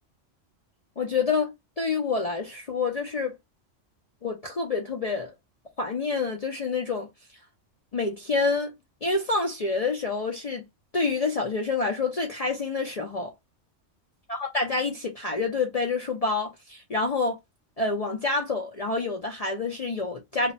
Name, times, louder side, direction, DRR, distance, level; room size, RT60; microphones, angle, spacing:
voice 1, 1.0-3.4 4.2-5.3 5.8-7.1 7.9-10.6 10.9-13.3 14.3-17.4 17.8-20.5, left 3 dB, 55° left, 0.4 m, -27 dB
2.4 x 2.0 x 3.9 m
omnidirectional pair, 1.3 m